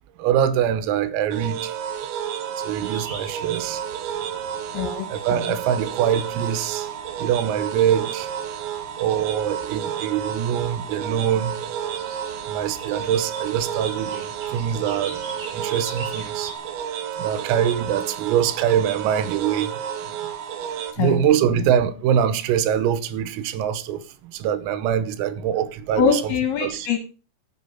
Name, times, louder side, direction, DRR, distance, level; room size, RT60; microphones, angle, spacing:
voice 1, 0.2-1.7 2.6-3.8 5.1-6.9 7.2-8.3 9.0-11.6 12.5-14.3 14.5-15.2 15.5-16.5 17.2-19.7 21.0-24.0 24.3-26.2 26.6-26.9, right 9 dB, 90° right, 3.5 m, -23 dB
sound 1, 1.3-20.9, right 9 dB, 75° right, 3.0 m, -31 dB
sound 2, 2.8-16.6, right 3 dB, 50° right, 5.0 m, -44 dB
voice 2, 4.7-5.1 5.3-5.6 21.0-21.2 21.4-21.7 26.0-27.0, left 7 dB, 70° left, 2.4 m, -23 dB
14.0 x 5.8 x 5.5 m
omnidirectional pair, 6.0 m